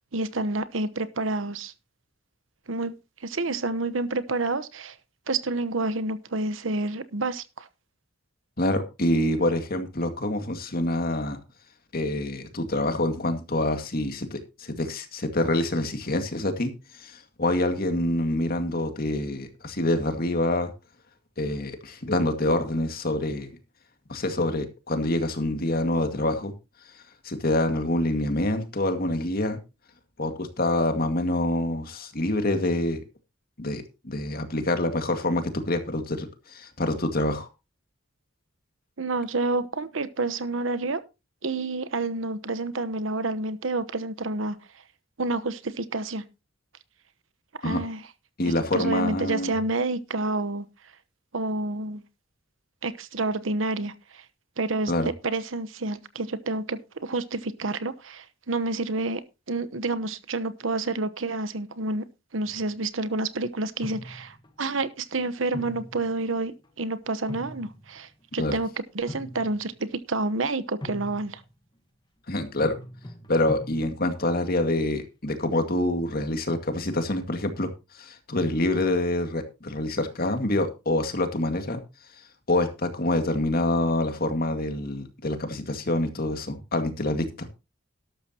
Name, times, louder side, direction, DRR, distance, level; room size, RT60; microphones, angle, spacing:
voice 1, 0.1-1.7 2.7-2.9 3.2-5.0 5.3-7.7 39.0-41.0 41.4-44.6 45.2-46.2 47.6-48.0 48.7-50.6 51.3-52.0 52.8-54.2 54.6-59.2 59.5-62.1 62.3-68.7 68.9-71.4, right 2 dB, 80° right, 1.0 m, -29 dB
voice 2, 8.6-11.4 11.9-20.7 21.4-23.5 24.1-26.5 27.2-29.6 30.2-33.0 33.6-37.5 47.6-47.8 48.4-49.5 54.9-55.1 68.4-68.6 72.3-72.8 73.3-77.7 78.0-81.8 82.5-87.5, left 1 dB, 50° left, 2.0 m, -26 dB
sound 1, 62.4-62.9 63.8-64.5 65.5-66.7 67.1-68.2 68.9-69.8 70.8-71.5 72.6-74.2, equal, 25° left, 1.5 m, -41 dB
12.5 x 12.5 x 2.9 m
head